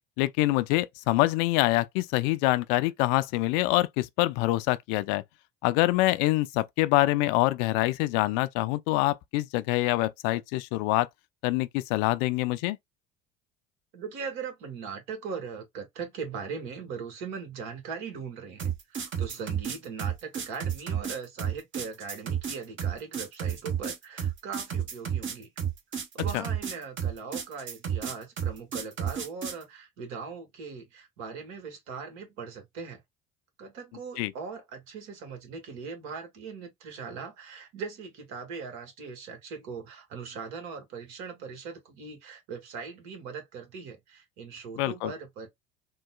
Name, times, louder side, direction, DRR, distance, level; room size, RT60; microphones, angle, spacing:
voice 1, 0.2-5.2 5.6-11.1 11.4-12.8 26.3-26.4 34.2-34.3 44.8-45.1, left 18 dB, 65° left, 0.4 m, -25 dB
voice 2, 13.9-25.5 26.1-33.0 33.6-45.5, right 5 dB, 65° right, 1.4 m, -40 dB
sound 1, 18.6-29.6, right 8 dB, 40° right, 1.1 m, -31 dB
3.7 x 2.2 x 2.3 m
hypercardioid pair, 65°, 29 cm